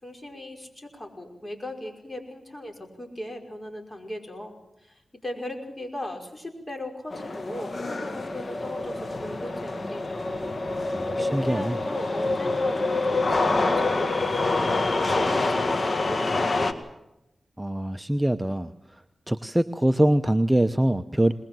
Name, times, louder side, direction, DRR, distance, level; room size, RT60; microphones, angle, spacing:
voice 1, 0.0-10.4 11.2-16.6, left 1 dB, 25° left, 3 dB, 5.5 m, -38 dB
sound 1, 7.1-16.7, left 2 dB, 50° left, 1.9 m, -26 dB
voice 2, 10.9-11.8 17.6-18.7 19.3-21.3, right 1 dB, 10° right, 9 dB, 0.8 m, -23 dB
21.5 x 21.0 x 7.7 m, 0.85 s
cardioid pair, 60°, 0 cm